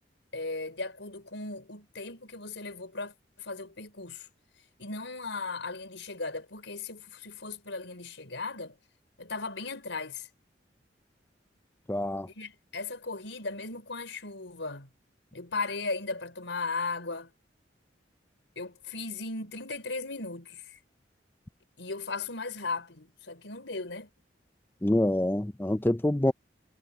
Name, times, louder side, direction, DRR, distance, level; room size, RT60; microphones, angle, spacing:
voice 1, 0.3-4.3 4.8-8.7 9.2-10.3 12.3-14.9 15.3-17.3 18.6-20.8 21.8-24.1, left 3 dB, 85° left, 4.4 m, -37 dB
voice 2, 11.9-12.3 24.8-26.3, left 1 dB, 10° left, 0.5 m, -26 dB
head